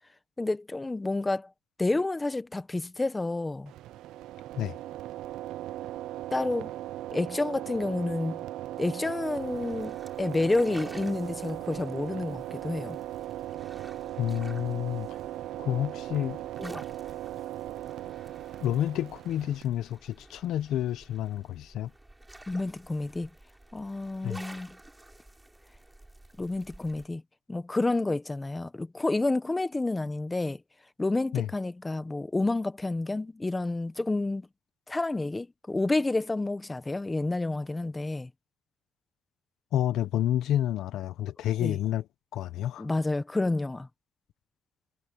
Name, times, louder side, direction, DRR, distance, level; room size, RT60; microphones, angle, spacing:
voice 1, 0.4-1.5 1.8-3.7 6.3-6.7 7.1-8.4 8.8-13.0 16.6-16.8 22.5-23.3 23.7-24.8 26.4-27.2 27.5-30.6 31.0-34.5 34.9-38.3 41.6-41.8 42.8-43.9, left 2 dB, 20° left, 1.2 m, -29 dB
sound 1, 3.7-19.6, right 14 dB, 90° right, 0.6 m, -38 dB
sound 2, 9.3-27.1, right 1 dB, 10° right, 5.8 m, -51 dB
voice 2, 14.2-15.1 15.6-16.4 18.6-21.9 24.2-24.4 31.3-31.5 39.7-42.0 42.3-42.9, left 11 dB, 80° left, 1.1 m, -29 dB
cardioid pair, 90°, 0 cm